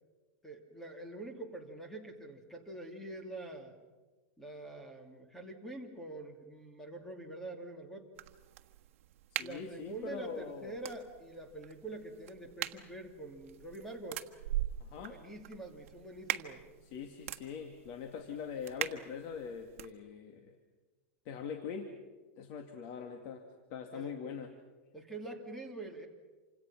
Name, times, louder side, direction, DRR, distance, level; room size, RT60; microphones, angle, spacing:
voice 1, 0.4-3.7 4.4-8.1 9.4-14.2 15.0-16.6 23.9-24.2 24.9-26.1, right 2 dB, 5° left, 3 dB, 2.8 m, -45 dB
sound 1, 8.1-19.9, right 13 dB, 65° right, 1.5 m, -43 dB
voice 2, 9.3-10.7 14.8-15.2 16.9-20.6 21.3-21.9 22.4-23.4 23.7-24.5, left 6 dB, 45° left, 5 dB, 2.2 m, -42 dB
28.5 x 26.0 x 6.0 m, 1.3 s
supercardioid pair, 150°, 8 cm